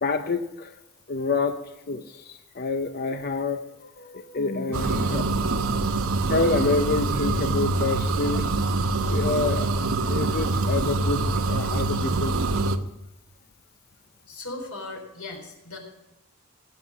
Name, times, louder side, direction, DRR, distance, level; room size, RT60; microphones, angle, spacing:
voice 1, 0.0-0.8 1.1-1.6 1.9-5.9 6.3-8.5 9.1-9.7 10.0-12.6, left 3 dB, 45° left, 7 dB, 0.6 m, -28 dB
sound 1, 4.7-12.8, right 3 dB, 75° right, 0.9 m, -25 dB
voice 2, 14.3-15.8, left 2 dB, 90° left, 2 dB, 4.1 m, -37 dB
17.5 x 7.8 x 6.3 m, 0.94 s
head